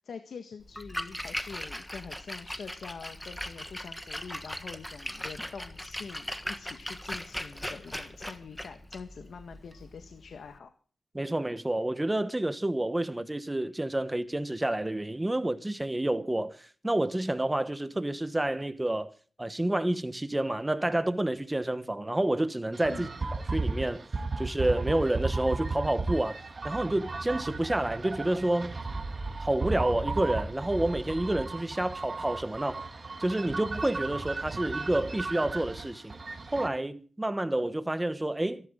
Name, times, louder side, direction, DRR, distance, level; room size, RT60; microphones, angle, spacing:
voice 1, 0.0-10.7 22.9-23.1, left 5 dB, 65° left, 1.6 m, -45 dB
Splash splatter, 0.6-10.6, equal, 5° left, 1.4 m, -39 dB
voice 2, 11.1-19.1 19.4-23.1 23.5-24.1 24.4-26.4 26.6-28.7 29.4-32.9 33.2-36.1 36.5-38.7, right 1 dB, 10° right, 1.1 m, -29 dB
sound 1, 22.7-36.7, right 3 dB, 35° right, 1.5 m, -35 dB
26.5 x 11.5 x 3.8 m
wide cardioid pair, 165°, 0 cm